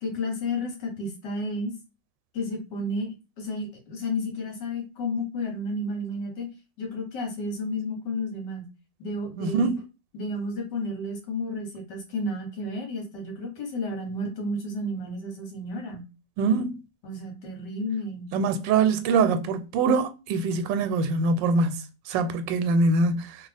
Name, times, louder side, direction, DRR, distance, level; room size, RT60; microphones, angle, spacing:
voice 1, 0.0-1.7 2.3-6.5 6.8-8.7 9.0-9.7 10.1-16.1 17.0-18.3, left 1 dB, 70° left, 1.7 m, -32 dB
voice 2, 9.4-9.8 16.4-16.7 18.3-23.4, right 4 dB, 85° right, 1.3 m, -24 dB
3.2 x 2.4 x 3.3 m
omnidirectional pair, 1.9 m